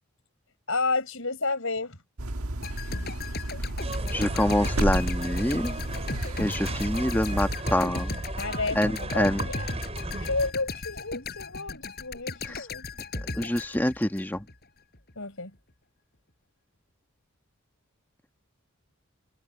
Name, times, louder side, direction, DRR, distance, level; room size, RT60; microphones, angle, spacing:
voice 1, 0.7-2.0 8.4-9.7 10.2-12.9 15.2-15.5, left 3 dB, 65° left, 7.5 m, -31 dB
sound 1, 2.2-7.6, right 1 dB, 80° right, 1.5 m, -32 dB
sound 2, 2.6-14.6 14.9-15.1, left 3 dB, 45° left, 7.2 m, -37 dB
sound 3, 3.8-10.5, right 1 dB, 30° right, 7.2 m, -35 dB
voice 2, 4.1-5.8 6.4-8.2 8.7-9.5 13.1-14.5, left 1 dB, 10° left, 1.3 m, -26 dB
head